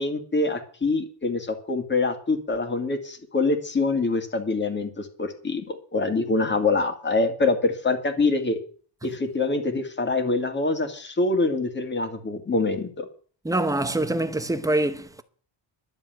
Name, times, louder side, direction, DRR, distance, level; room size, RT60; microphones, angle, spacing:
voice 1, 0.0-8.6 9.0-13.1, left 3 dB, 25° left, 2.1 m, -25 dB
voice 2, 13.4-15.2, right 1 dB, 10° right, 0.8 m, -25 dB
12.0 x 7.4 x 9.1 m
cardioid pair, 180°, 44 cm